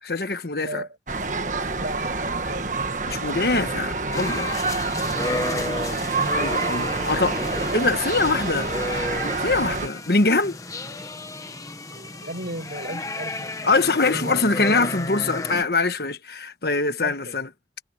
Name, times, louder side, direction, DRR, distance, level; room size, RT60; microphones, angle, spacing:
voice 1, 0.0-0.8 3.1-4.5 6.3-7.4 7.7-8.7 9.4-10.6 13.6-17.5, left 3 dB, 65° left, 1.2 m, -23 dB
sound 1, 1.1-9.9, right 3 dB, 45° right, 1.5 m, -27 dB
voice 2, 1.7-2.7 7.5-7.9 8.2-8.3 10.9-11.0 11.9-13.7 14.0-14.4 17.0-17.4, right 1 dB, 65° right, 6.7 m, -36 dB
sound 2, 4.1-15.6, left 2 dB, 20° left, 1.1 m, -32 dB
head